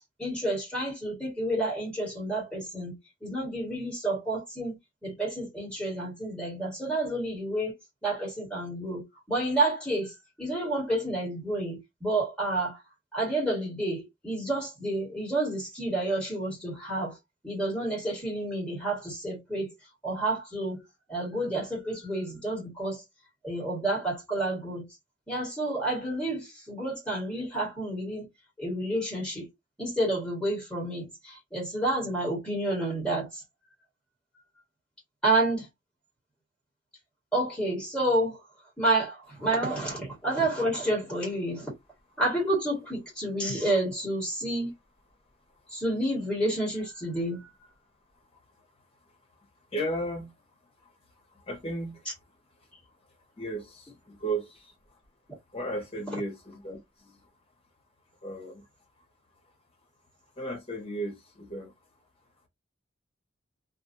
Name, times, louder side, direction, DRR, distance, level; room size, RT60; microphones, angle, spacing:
voice 1, 0.2-7.7 8.0-12.8 13.1-17.2 17.4-20.8 21.1-23.0 23.4-24.9 25.3-28.3 28.6-29.5 29.8-33.4 35.2-35.7 37.3-38.4 38.8-41.7 42.2-44.7 45.7-47.5, right 1 dB, 5° left, 1.4 m, -30 dB
voice 2, 49.7-50.3 50.8-50.9 51.3-52.0 53.4-54.7 55.5-57.3 58.2-58.7 60.4-61.7, right 1 dB, 30° left, 1.1 m, -35 dB
2.6 x 2.6 x 2.6 m
head